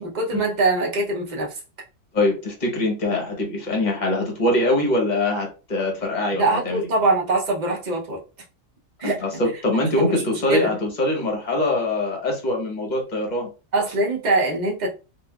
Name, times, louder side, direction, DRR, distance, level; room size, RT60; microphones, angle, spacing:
voice 1, 0.0-1.6 6.3-8.2 9.0-9.2 10.0-10.7 13.7-14.9, right 2 dB, 75° right, 0.4 m, -23 dB
voice 2, 2.1-6.8 9.0-13.5, left 1 dB, 35° left, 0.8 m, -23 dB
3.8 x 2.6 x 2.3 m
omnidirectional pair, 2.0 m